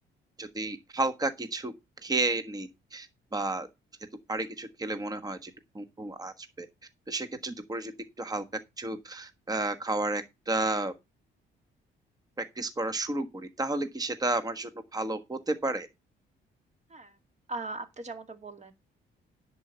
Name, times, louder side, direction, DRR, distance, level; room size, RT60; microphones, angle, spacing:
voice 1, 0.4-1.7 2.0-3.7 4.3-6.7 7.1-7.9 8.2-8.4 8.8-10.9 12.5-15.9, right 2 dB, 20° right, 1.4 m, -32 dB
voice 2, 17.5-18.7, right 3 dB, 35° right, 2.3 m, -39 dB
10.5 x 4.7 x 8.0 m
cardioid pair, 90°, 20 cm